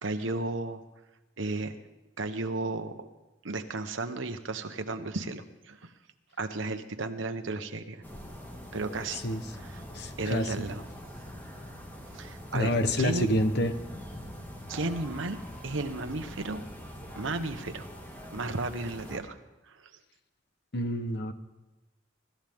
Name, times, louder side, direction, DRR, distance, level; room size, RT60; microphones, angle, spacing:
voice 1, 0.0-0.8 1.4-1.8 2.2-3.1 3.4-5.9 6.4-8.0 8.7-9.2 9.5-9.8 10.2-10.8 12.1-12.7 13.0-13.3 14.7-15.4 15.6-16.6 17.1-17.9 18.3-19.4 19.6-19.9, right 2 dB, 80° right, 7 dB, 1.2 m, -34 dB
sound 1, 8.0-19.2, equal, 10° left, 2.0 m, -43 dB
voice 2, 9.9-10.7 12.5-13.7 20.7-21.3, left 1 dB, 55° left, 9 dB, 1.1 m, -28 dB
24.5 x 13.5 x 3.7 m, 1.1 s
head